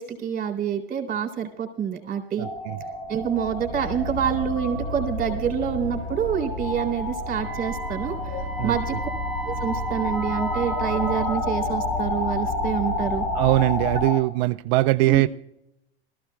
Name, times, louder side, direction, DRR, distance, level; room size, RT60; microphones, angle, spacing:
voice 1, 0.0-2.5 3.1-9.0 9.5-13.2 15.1-15.3, right 8 dB, 30° right, 2 dB, 3.8 m, -27 dB
sound 1, 2.4-14.2, left 2 dB, 60° left, 3.2 m, -31 dB
voice 2, 2.4-2.8 8.6-8.8 13.3-15.3, right 18 dB, 55° right, 11 dB, 0.4 m, -21 dB
sound 2, 3.0-14.0, left 1 dB, 25° left, 5.5 m, -33 dB
Wind instrument woodwind instrument, 7.3-11.4, right 8 dB, ahead, 1.8 m, -36 dB
20.5 x 14.5 x 2.3 m, 0.83 s
hypercardioid pair, 95°, 30 cm